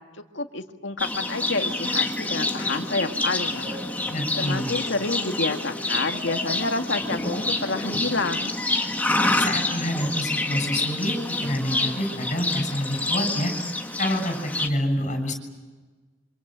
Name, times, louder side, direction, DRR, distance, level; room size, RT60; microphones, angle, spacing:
voice 1, 0.3-3.8 4.4-8.6, left 3 dB, 80° left, 5 dB, 1.9 m, -29 dB
Livestock farm animals working animals, 1.0-14.7, left 2 dB, 10° left, 1.8 m, -27 dB
sound 1, 2.1-5.4 5.7-8.7, left 1 dB, 35° right, 5.1 m, -42 dB
voice 2, 4.1-4.7 9.4-13.5 14.0-15.3, equal, 40° left, 5 dB, 6.7 m, -27 dB
27.0 x 26.0 x 7.5 m, 1.3 s
head